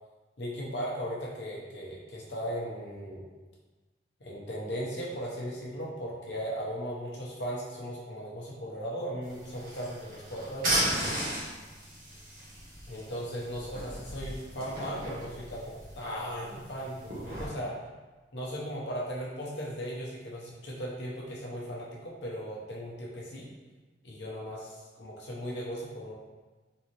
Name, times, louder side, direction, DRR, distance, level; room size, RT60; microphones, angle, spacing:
voice 1, 0.4-3.3 4.2-11.2 12.9-17.7 18.3-23.5 24.0-26.1, equal, 70° left, -4 dB, 0.8 m, -37 dB
sound 1, 9.2-17.5, right 1 dB, 55° right, 1.3 m, -36 dB
3.8 x 2.8 x 3.0 m, 1.3 s
head